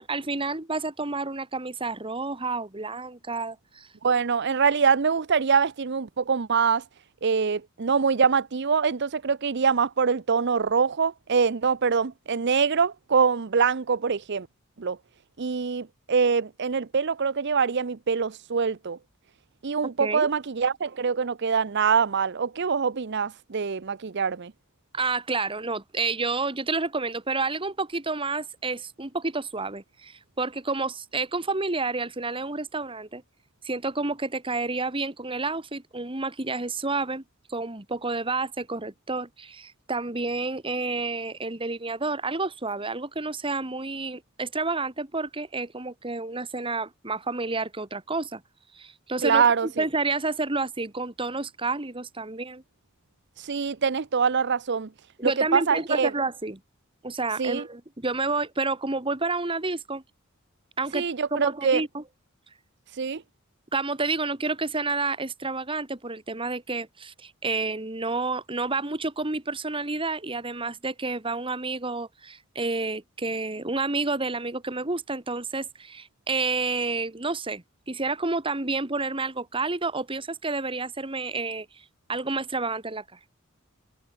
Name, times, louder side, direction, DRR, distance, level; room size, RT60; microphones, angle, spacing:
voice 1, 0.0-3.9 20.0-20.3 24.9-33.2 33.6-37.2 37.5-48.4 48.7-52.6 55.2-56.6 57.0-60.0 60.8-62.0 63.7-81.7 82.1-83.0, right 3 dB, 25° right, 2.0 m, -30 dB
voice 2, 4.0-6.8 7.2-14.5 14.8-15.0 15.4-19.0 19.6-24.5 49.2-49.8 53.4-54.9 55.2-56.1 57.4-57.6 60.9-61.8 62.9-63.2, right 5 dB, 55° right, 0.7 m, -24 dB
head